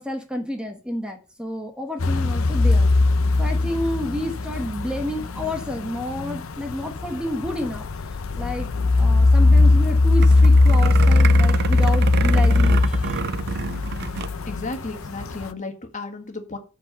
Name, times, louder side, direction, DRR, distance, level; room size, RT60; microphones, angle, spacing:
voice 1, 0.0-2.9 3.4-7.8 8.3-8.7 9.0-13.2, left 1 dB, 5° right, 1.1 m, -30 dB
sound 1, 2.0-15.5, left 2 dB, 75° left, 0.7 m, -19 dB
sound 2, 10.2-14.3 14.6-14.7 15.0-15.3, right 5 dB, 50° right, 0.4 m, -27 dB
voice 2, 14.5-16.6, left 3 dB, 35° left, 1.6 m, -33 dB
8.0 x 4.7 x 6.8 m
head